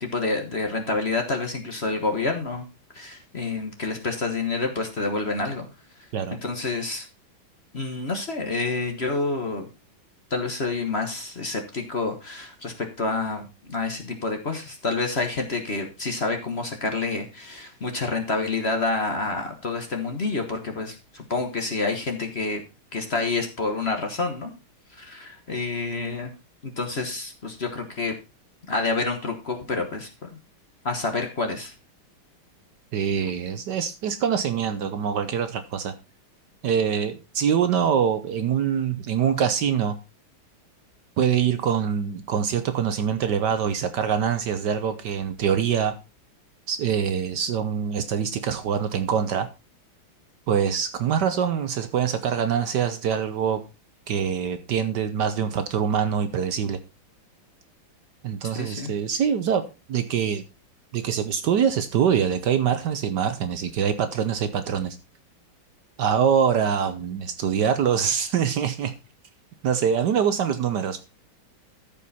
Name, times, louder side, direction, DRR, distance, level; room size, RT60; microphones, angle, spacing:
voice 1, 0.0-2.7 2.9-5.7 6.4-7.1 7.7-9.7 10.3-22.6 22.9-24.5 24.9-26.3 26.6-28.1 28.7-30.4 30.8-31.7 58.5-58.9, left 3 dB, 35° left, 1.3 m, -28 dB
voice 2, 32.9-35.9 36.6-40.0 41.2-45.9 46.7-49.5 50.5-53.6 54.1-56.8 58.2-59.6 59.9-60.4 60.9-65.0 66.0-68.9 69.6-71.0, right 7 dB, 65° right, 1.3 m, -24 dB
13.5 x 5.4 x 4.1 m
omnidirectional pair, 2.2 m